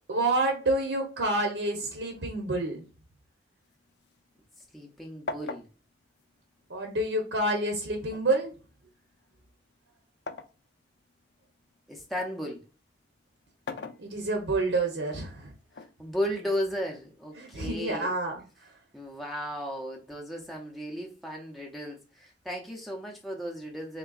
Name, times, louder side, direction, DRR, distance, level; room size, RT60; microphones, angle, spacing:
voice 1, 0.1-2.8 6.7-8.5 14.0-15.5 17.4-18.4, right 2 dB, 75° right, 0.8 m, -28 dB
sound 1, 3.6-4.9 5.3-7.2 8.1-10.6 11.1-12.4 13.4-14.6 15.7-16.7, left 3 dB, 60° left, 0.4 m, -42 dB
voice 2, 4.7-5.7 11.9-12.6 15.8-18.1 18.9-24.0, equal, ahead, 0.5 m, -35 dB
3.8 x 3.3 x 2.3 m
head